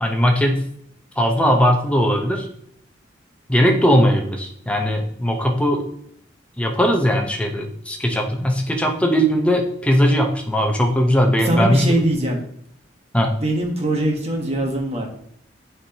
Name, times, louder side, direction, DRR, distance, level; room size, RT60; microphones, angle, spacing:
voice 1, 0.0-0.6 1.2-2.5 3.5-5.8 6.6-12.0 13.1-13.3, equal, 5° left, 2 dB, 0.8 m, -19 dB
voice 2, 11.3-12.4 13.4-15.1, right 1 dB, 35° right, 1 dB, 1.2 m, -22 dB
8.4 x 4.5 x 2.8 m, 0.68 s
head